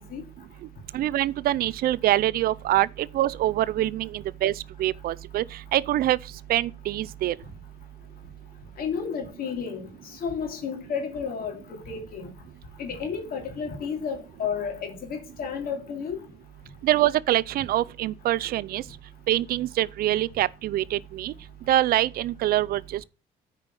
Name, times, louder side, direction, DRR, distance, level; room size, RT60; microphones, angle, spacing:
voice 1, 0.9-4.5 4.8-5.4 5.7-6.2 6.5-7.4 16.8-18.8 19.3-21.3 21.7-23.0, right 14 dB, 60° right, 0.5 m, -24 dB
voice 2, 8.8-12.3 12.8-16.2, left 6 dB, 60° left, 2.9 m, -32 dB
9.5 x 5.0 x 6.0 m
cardioid pair, 110°, 17 cm